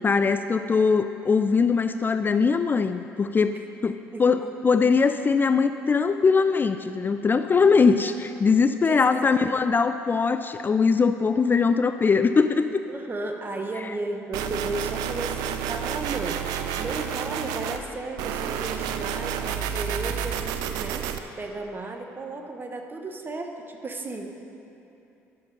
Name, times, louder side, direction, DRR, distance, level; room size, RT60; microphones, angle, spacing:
voice 1, 0.0-3.5 3.8-12.8, left 5 dB, 30° left, 10 dB, 0.4 m, -21 dB
voice 2, 8.7-9.5 12.9-24.4, right 2 dB, 30° right, 4 dB, 1.2 m, -34 dB
sound 1, 14.3-17.8 18.2-21.2, right 8 dB, 75° right, 0.5 m, -30 dB
11.5 x 6.8 x 5.4 m, 2.9 s
hypercardioid pair, 60°, 7 cm